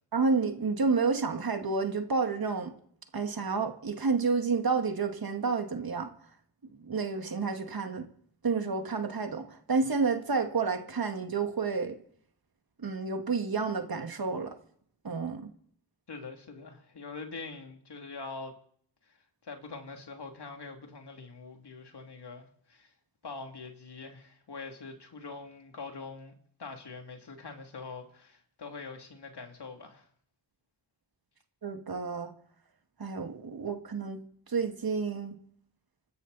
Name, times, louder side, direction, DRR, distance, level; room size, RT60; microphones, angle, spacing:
voice 1, 0.1-2.7 3.1-6.1 6.8-8.1 8.4-12.0 12.8-14.5 15.0-15.4 31.6-32.3 33.0-34.2 34.5-35.3, right 4 dB, 50° right, 2.1 m, -30 dB
voice 2, 16.1-18.5 19.1-19.2 19.4-22.9 23.2-26.3 26.6-30.1, left 4 dB, 60° left, 2.9 m, -44 dB
26.0 x 13.0 x 4.2 m
cardioid pair, 55°, 44 cm